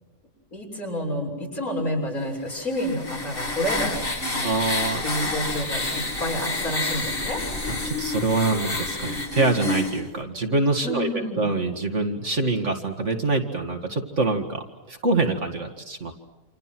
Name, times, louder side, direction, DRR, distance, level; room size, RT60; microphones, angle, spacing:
voice 1, 0.5-4.5 5.0-7.4 10.8-11.6, equal, 65° left, 0 dB, 7.3 m, -29 dB
sound 1, 2.5-10.0, left 2 dB, 35° left, 2.6 m, -29 dB
voice 2, 4.4-5.3 7.7-16.1, right 3 dB, 50° right, 4 dB, 2.4 m, -25 dB
29.0 x 27.5 x 6.2 m, 1.1 s
omnidirectional pair, 1.6 m